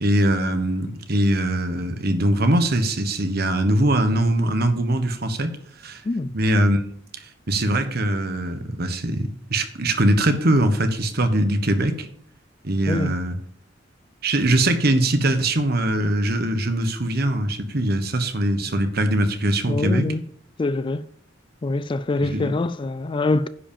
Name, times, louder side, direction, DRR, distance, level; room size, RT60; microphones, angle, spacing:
voice 1, 0.0-6.0 6.3-6.8 7.2-12.1 12.6-13.4 14.2-20.1 22.2-22.5, right 1 dB, 55° right, 1.3 m, -22 dB
voice 2, 19.7-20.2 20.6-21.1 21.6-23.5, left 2 dB, 25° left, 0.3 m, -24 dB
10.0 x 5.1 x 7.1 m
head